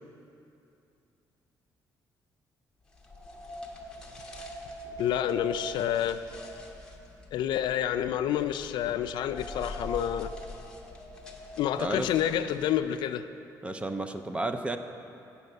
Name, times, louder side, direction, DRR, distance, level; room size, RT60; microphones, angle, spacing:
sound 1, 2.9-12.9, left 1 dB, 10° left, 0.9 m, -43 dB
voice 1, 5.0-6.2 7.3-10.3 11.6-13.3, left 10 dB, 85° left, 10 dB, 0.4 m, -28 dB
voice 2, 13.6-14.8, right 2 dB, 15° right, 8 dB, 0.4 m, -32 dB
8.0 x 7.0 x 6.5 m, 2.7 s
cardioid pair, 145°, 8 cm